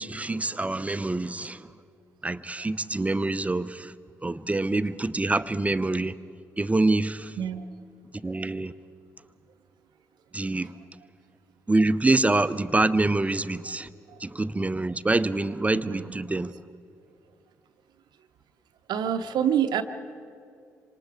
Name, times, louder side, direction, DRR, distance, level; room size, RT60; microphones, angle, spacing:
voice 1, 0.0-1.7 2.2-3.9 4.2-6.2 6.6-7.3 8.2-8.7 10.3-10.7 11.7-13.9 14.2-16.5, right 2 dB, 15° right, 0.7 m, -25 dB
voice 2, 18.9-19.8, right 9 dB, 55° right, 0.8 m, -26 dB
27.0 x 26.0 x 4.9 m
figure-of-eight pair, 40°, 8 cm